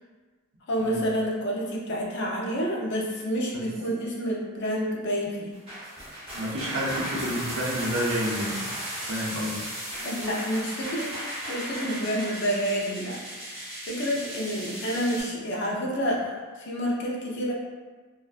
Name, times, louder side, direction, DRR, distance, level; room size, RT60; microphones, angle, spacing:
voice 1, 0.7-5.5 10.0-11.2 11.5-13.2 13.9-17.5, equal, 50° left, -2 dB, 0.4 m, -29 dB
sound 1, 5.5-15.2, equal, 25° right, 0.8 m, -36 dB
voice 2, 6.3-8.6 9.1-9.6, equal, 75° right, -4 dB, 0.6 m, -29 dB
2.4 x 2.2 x 2.3 m, 1.4 s
head